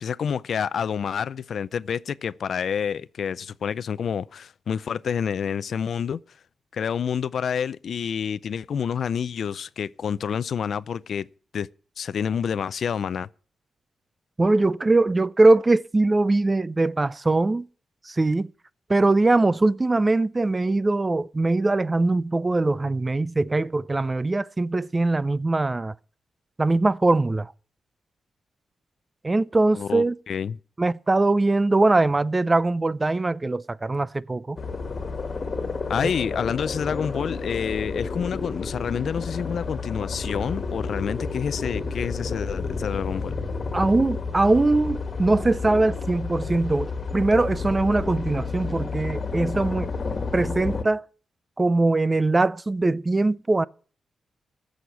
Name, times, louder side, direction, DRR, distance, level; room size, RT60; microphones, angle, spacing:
voice 1, 0.0-6.2 6.7-11.3 11.5-11.7 12.0-13.3 29.7-30.6 35.9-43.3, left 7 dB, 70° left, 0.4 m, -28 dB
voice 2, 14.4-17.7 18.1-18.5 18.9-25.9 26.6-27.5 29.2-30.2 30.8-34.6 43.7-49.9 50.3-51.1 51.6-53.6, right 2 dB, 25° right, 0.5 m, -21 dB
sound 1, 34.6-50.8, left 4 dB, 40° left, 1.8 m, -31 dB
14.5 x 6.4 x 6.9 m
cardioid pair, 85°, 0 cm